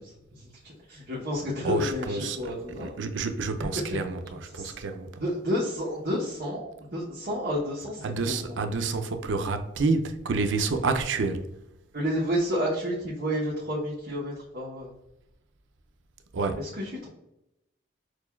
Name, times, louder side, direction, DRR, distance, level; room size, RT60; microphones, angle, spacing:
voice 1, 0.0-2.9 4.5-4.8 5.2-8.6 11.9-14.9 16.6-17.1, equal, 55° right, 0.8 m, -31 dB
voice 2, 1.6-2.4 2.8-5.2 8.0-11.5 16.3-16.6, right 3 dB, 80° right, 0.4 m, -28 dB
6.2 x 2.2 x 2.2 m
head